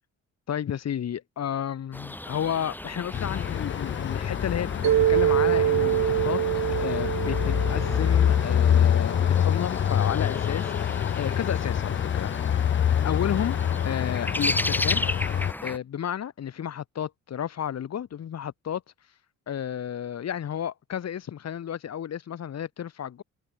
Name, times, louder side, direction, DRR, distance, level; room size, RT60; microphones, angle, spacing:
voice 1, 0.5-12.6 13.0-15.4 15.6-18.8 19.5-23.2, left 9 dB, 55° left, 3.9 m, -32 dB
sound 1, 1.9-15.8, left 1 dB, 5° left, 1.2 m, -35 dB
sound 2, 3.1-15.5, left 9 dB, 40° left, 0.7 m, -26 dB
Mallet percussion, 4.8-9.0, right 12 dB, 65° right, 1.4 m, -25 dB
cardioid pair, 130°, 32 cm